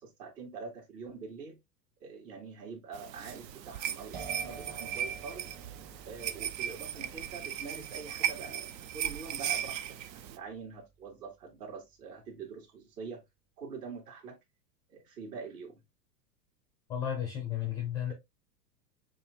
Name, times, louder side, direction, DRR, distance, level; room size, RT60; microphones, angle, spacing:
voice 1, 0.0-1.6 2.0-5.5 6.0-13.2 13.6-14.4 14.9-15.8, right 5 dB, 65° right, 2.5 m, -45 dB
sound 1, 2.9-10.4, right 10 dB, 80° right, 0.7 m, -37 dB
sound 2, 4.1-11.7, right 4 dB, 20° right, 0.8 m, -51 dB
voice 2, 16.9-18.1, left 10 dB, 10° left, 0.3 m, -33 dB
7.2 x 2.8 x 2.2 m
hypercardioid pair, 120°, 50 cm